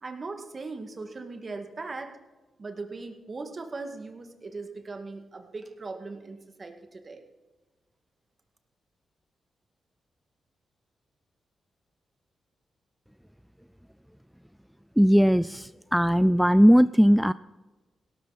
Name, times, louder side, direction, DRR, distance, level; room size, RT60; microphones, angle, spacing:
voice 1, 0.0-2.2 2.6-7.2, right 3 dB, 45° right, 5 dB, 2.2 m, -39 dB
voice 2, 15.0-17.3, equal, ahead, 15 dB, 0.3 m, -19 dB
17.0 x 13.0 x 4.2 m, 1.2 s
supercardioid pair, 50°, 0 cm